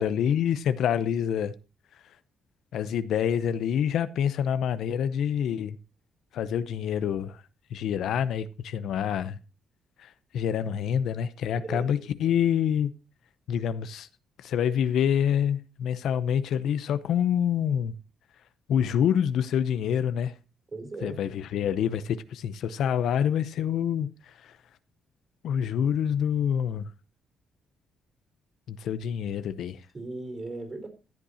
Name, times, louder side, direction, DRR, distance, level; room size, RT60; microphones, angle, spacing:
voice 1, 0.0-1.5 2.7-5.8 6.3-7.4 7.7-9.4 10.0-12.9 13.5-14.1 14.4-17.9 18.7-20.3 21.0-24.5 25.4-26.9 28.7-29.8, left 9 dB, 75° left, 0.7 m, -27 dB
voice 2, 11.6-12.1 20.7-21.2 29.9-30.9, right 3 dB, 35° right, 4.0 m, -37 dB
15.0 x 8.3 x 2.8 m
cardioid pair, 90°, 0 cm